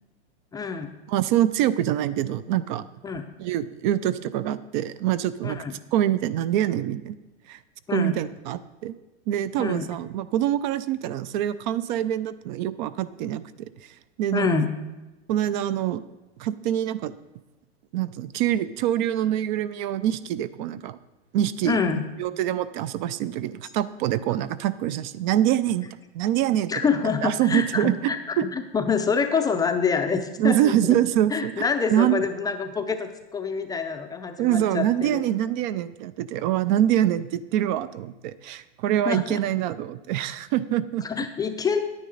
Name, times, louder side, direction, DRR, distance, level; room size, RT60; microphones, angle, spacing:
voice 1, 0.5-0.9 3.0-3.2 5.4-5.7 7.9-8.2 9.6-9.9 14.3-14.7 21.6-22.0 26.7-31.0 31.3-35.2 39.1-39.4 41.0-41.8, left 5 dB, 10° left, 7 dB, 0.5 m, -26 dB
voice 2, 1.1-2.8 3.4-5.6 5.9-7.2 7.5-7.6 7.9-9.0 9.3-13.4 13.8-14.5 15.3-16.0 16.4-17.1 17.9-21.0 21.3-21.8 22.2-25.9 26.1-26.7 27.2-28.1 30.4-32.2 34.4-41.0, right 12 dB, 45° right, 15 dB, 0.4 m, -25 dB
10.0 x 9.5 x 4.0 m, 1.1 s
hypercardioid pair, 125°, 33 cm